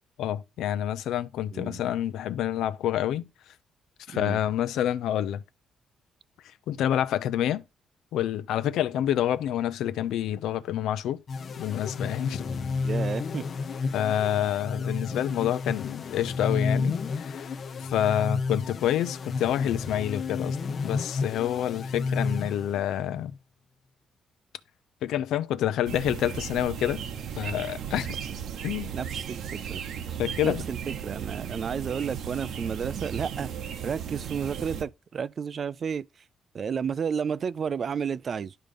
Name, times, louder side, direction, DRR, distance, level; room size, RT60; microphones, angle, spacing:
voice 1, 0.2-3.3 4.1-5.4 6.7-7.6 8.1-11.2 11.6-12.4 13.9-17.5 17.9-20.6 20.8-23.3 25.0-27.0 27.4-28.1 28.6-28.9 30.2-30.6, left 11 dB, 85° left, 0.6 m, -28 dB
sound 1, 11.3-23.1, left 4 dB, 50° left, 0.8 m, -31 dB
voice 2, 12.8-13.4 28.9-29.8 30.4-33.5 33.8-36.1 36.5-38.5, right 6 dB, 50° right, 0.4 m, -32 dB
sound 2, 25.9-34.8, right 8 dB, 75° right, 1.1 m, -36 dB
11.5 x 3.8 x 5.2 m
cardioid pair, 90°, 0 cm